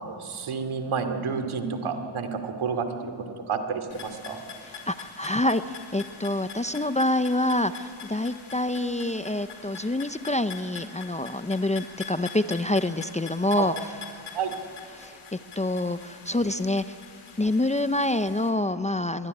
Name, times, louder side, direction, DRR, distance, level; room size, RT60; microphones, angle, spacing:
voice 1, 0.0-3.1 3.5-4.4 13.6-13.7 14.3-14.5, right 5 dB, 80° right, 6 dB, 2.7 m, -30 dB
sound 1, 3.9-18.5, left 6 dB, 80° left, 4.5 m, -44 dB
voice 2, 4.9-13.7 15.0-17.0 17.4-19.3, left 1 dB, 15° left, 12 dB, 0.5 m, -26 dB
23.5 x 22.5 x 9.8 m, 2.4 s
wide cardioid pair, 140°, 49 cm